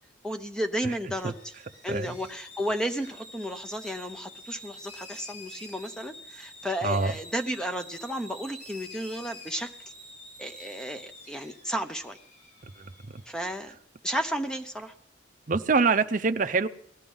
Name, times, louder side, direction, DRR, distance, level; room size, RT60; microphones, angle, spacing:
voice 1, 0.2-1.5 1.8-9.7 10.4-12.2 13.3-13.8 14.0-14.9, equal, 5° left, 7 dB, 0.7 m, -33 dB
sound 1, 1.1-13.4, left 1 dB, 40° left, 6.4 m, -48 dB
voice 2, 6.8-7.1 12.8-12.9 15.5-16.7, right 4 dB, 45° right, 9 dB, 0.6 m, -24 dB
18.5 x 12.0 x 5.4 m, 0.71 s
head